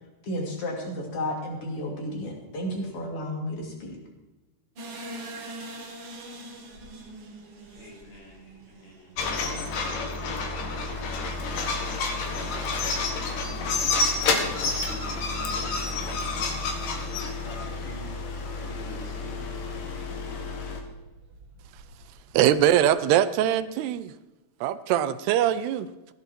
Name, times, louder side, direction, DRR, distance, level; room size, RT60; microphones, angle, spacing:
voice 1, 0.2-4.0, left 1 dB, 35° left, 1 dB, 3.4 m, -32 dB
sound 1, 4.7-15.6 15.9-16.0 16.5-16.8 17.0-17.7 18.2-22.9, right 1 dB, 45° right, 2.2 m, -46 dB
voice 2, 7.7-9.1 14.8-17.1 17.4-18.1 18.5-19.4, left 1 dB, 80° left, -1 dB, 6.2 m, -48 dB
sound 2, 9.2-20.8, left 3 dB, 60° left, 2.8 m, -29 dB
voice 3, 22.3-24.1 24.6-25.9, right 11 dB, 80° right, 13 dB, 2.6 m, -22 dB
16.0 x 11.5 x 4.5 m, 1.1 s
omnidirectional pair, 4.8 m